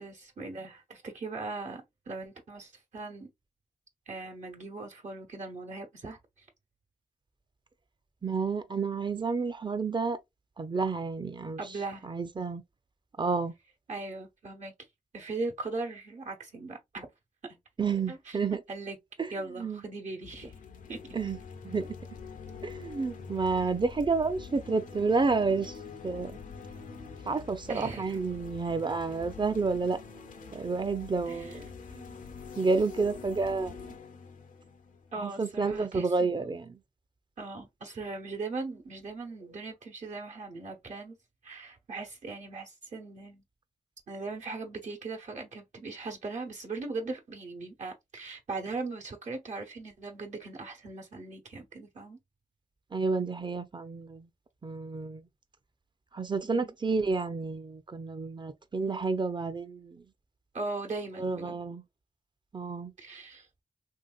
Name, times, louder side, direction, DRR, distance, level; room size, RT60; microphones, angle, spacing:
voice 1, 0.0-3.3 4.1-6.5 11.6-12.0 13.9-14.7 15.1-17.1 17.4-17.6 18.1-19.0 19.3-20.6 20.9-21.0 27.7-28.2 31.3-31.6 35.1-36.6 37.4-41.2 41.4-43.4 44.1-52.2 56.4-56.7 60.5-61.6 63.0-63.5, right 3 dB, 70° right, 1.1 m, -39 dB
voice 2, 8.2-10.2 10.6-11.6 12.0-12.6 13.2-13.5 17.8-18.6 19.2-19.3 19.6-19.8 21.1-21.4 21.6-21.9 22.6-25.8 26.0-26.4 27.2-30.0 30.5-32.1 32.5-33.9 35.2-36.8 52.9-54.3 54.6-55.2 56.1-60.0 61.2-61.8 62.5-62.9, right 4 dB, 35° right, 0.6 m, -30 dB
sound 1, 20.2-35.6, left 5 dB, 85° left, 0.6 m, -45 dB
3.0 x 2.8 x 2.4 m
cardioid pair, 55°, 13 cm